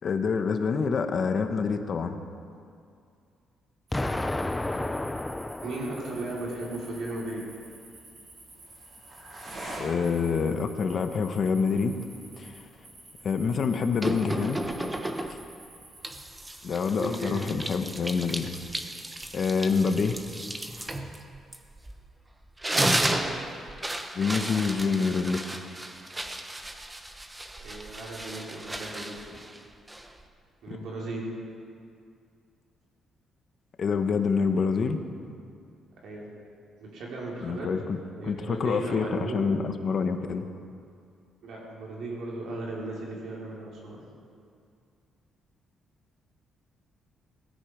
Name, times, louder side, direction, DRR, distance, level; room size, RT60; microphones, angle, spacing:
voice 1, 0.0-2.2 9.8-12.0 12.4-12.6 13.2-14.6 15.3-15.4 16.6-18.5 19.3-20.2 24.1-25.5 30.7-30.8 33.8-35.0 37.4-40.5, left 5 dB, 50° left, 7 dB, 1.2 m, -27 dB
Explosion, 3.9-6.9, left 2 dB, 15° left, 0.6 m, -32 dB
sound 1, 3.9-16.3, right 1 dB, 50° right, 5.2 m, -47 dB
voice 2, 5.6-7.4 17.0-17.4 23.2-23.4 27.6-29.4 30.6-31.3 36.0-36.3 36.8-37.7 38.2-39.4 41.4-44.0, right 2 dB, 70° right, -4 dB, 4.7 m, -36 dB
sound 2, 14.0-15.5 16.0-22.1 22.4-30.3, right 1 dB, 15° right, 1.1 m, -33 dB
18.0 x 14.5 x 5.1 m, 2.4 s
cardioid pair, 90°, 0 cm